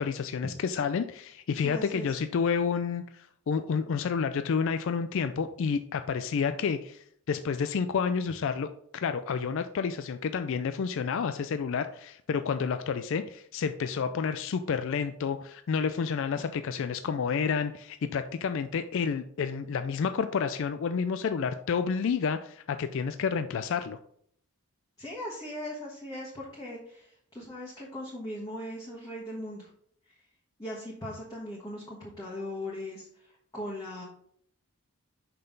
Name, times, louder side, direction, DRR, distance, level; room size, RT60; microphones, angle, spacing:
voice 1, 0.0-8.7 8.9-24.0, left 6 dB, 60° left, 9 dB, 0.3 m, -30 dB
voice 2, 1.5-2.2 16.4-16.5 25.0-29.7 30.1-30.2 30.6-34.0, left 1 dB, 15° left, -6 dB, 1.3 m, -39 dB
5.7 x 5.5 x 3.9 m, 0.65 s
head